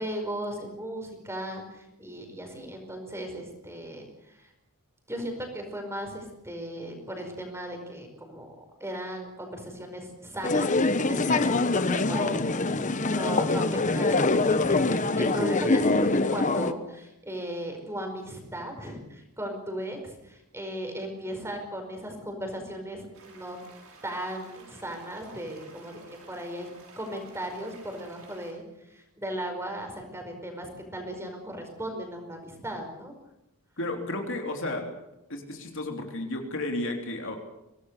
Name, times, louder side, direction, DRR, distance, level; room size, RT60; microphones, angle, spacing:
voice 1, 0.0-4.5 5.1-8.5 8.8-10.7 11.1-11.4 11.7-12.4 12.7-12.8 13.0-23.6 24.0-28.6 28.9-33.1, equal, 10° right, 4 dB, 5.0 m, -37 dB
sound 1, 10.4-16.7, left 3 dB, 35° left, 1.1 m, -24 dB
sound 2, 23.1-28.5, right 3 dB, 65° right, 6.2 m, -52 dB
voice 2, 33.8-34.8 35.3-37.4, left 2 dB, 60° left, 3 dB, 3.4 m, -32 dB
24.0 x 18.5 x 6.7 m, 0.89 s
head